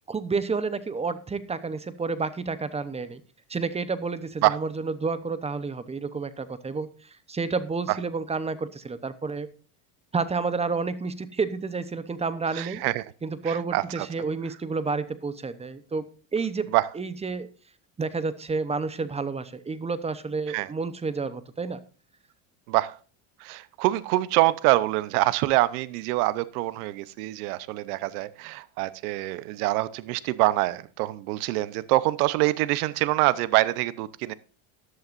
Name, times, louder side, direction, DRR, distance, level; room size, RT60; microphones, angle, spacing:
voice 1, 0.1-3.2 3.5-9.5 10.1-12.8 13.2-16.1 16.3-17.5 18.0-21.8, right 4 dB, 15° right, 14 dB, 0.8 m, -30 dB
voice 2, 12.5-13.0 13.4-14.1 16.7-16.9 20.5-20.7 22.7-23.0 23.4-34.3, right 18 dB, 85° right, 18 dB, 0.9 m, -25 dB
14.5 x 11.0 x 2.6 m, 0.37 s
supercardioid pair, 130°, 44 cm